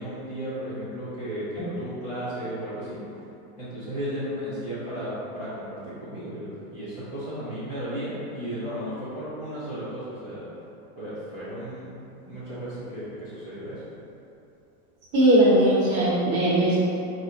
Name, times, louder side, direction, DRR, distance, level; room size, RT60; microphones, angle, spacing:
voice 1, 0.0-3.1 3.6-10.5 11.0-11.9 12.2-13.8, equal, 20° left, -13 dB, 0.7 m, -34 dB
voice 2, 15.1-16.8, right 1 dB, 40° right, -8 dB, 1.1 m, -19 dB
4.3 x 2.3 x 3.8 m, 2.8 s
supercardioid pair, 180°, 45 cm